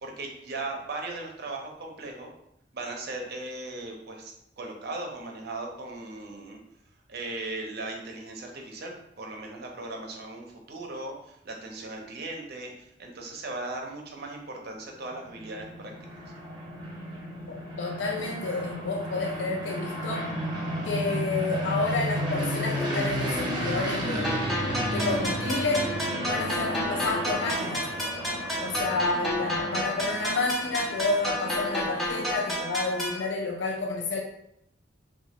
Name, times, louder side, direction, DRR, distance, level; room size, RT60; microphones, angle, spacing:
voice 1, 0.0-2.3 2.7-6.6 7.1-16.2, right 2 dB, 55° right, 1 dB, 0.6 m, -38 dB
sound 1, 15.1-32.3, equal, 25° right, 0.8 m, -33 dB
voice 2, 17.8-20.3 20.8-24.4 24.9-25.9 26.2-27.9 28.6-34.2, left 3 dB, 70° left, 2 dB, 0.5 m, -30 dB
sound 2, 24.2-33.2, equal, ahead, 0.4 m, -31 dB
3.1 x 2.3 x 2.8 m, 0.78 s
head